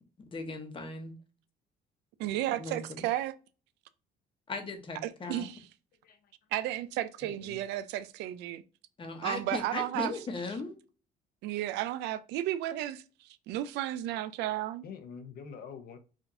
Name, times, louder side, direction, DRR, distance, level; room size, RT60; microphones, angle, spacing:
voice 1, 0.3-1.1 2.6-3.0 4.5-5.4 9.0-10.7, left 3 dB, 30° left, 1.0 m, -38 dB
voice 2, 2.2-3.3 5.0-5.6 6.5-8.6 9.2-10.1 11.4-14.8, right 13 dB, 90° right, 0.4 m, -33 dB
voice 3, 7.2-7.6 14.8-16.0, left 6 dB, 60° left, 0.7 m, -46 dB
4.9 x 2.5 x 2.7 m
cardioid pair, 110°, 17 cm